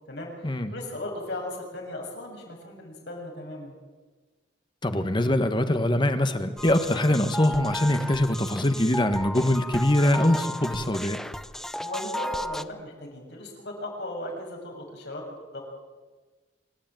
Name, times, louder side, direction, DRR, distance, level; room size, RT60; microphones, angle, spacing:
voice 1, 0.1-3.7 11.8-15.7, left 1 dB, 70° left, 1 dB, 7.4 m, -37 dB
voice 2, 4.8-11.2, left 1 dB, 25° left, 8 dB, 1.4 m, -23 dB
sound 1, 6.6-12.6, equal, 5° left, 0.6 m, -34 dB
26.5 x 13.0 x 9.1 m, 1.3 s
head